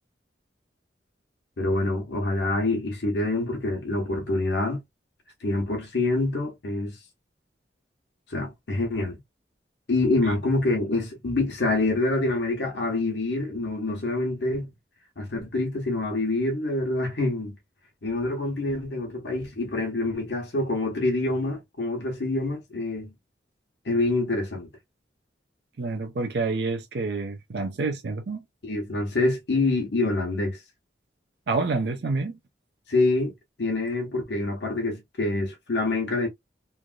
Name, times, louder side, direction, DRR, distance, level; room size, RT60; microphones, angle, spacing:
voice 1, 1.6-4.8 5.4-7.0 8.3-9.2 9.9-14.7 15.2-17.6 18.0-23.1 23.8-24.7 28.6-30.6 32.9-33.3 33.6-36.3, left 2 dB, 75° left, 1.0 m, -26 dB
voice 2, 25.8-28.4 31.5-32.4, right 3 dB, 70° right, 0.5 m, -28 dB
3.3 x 2.5 x 2.2 m
head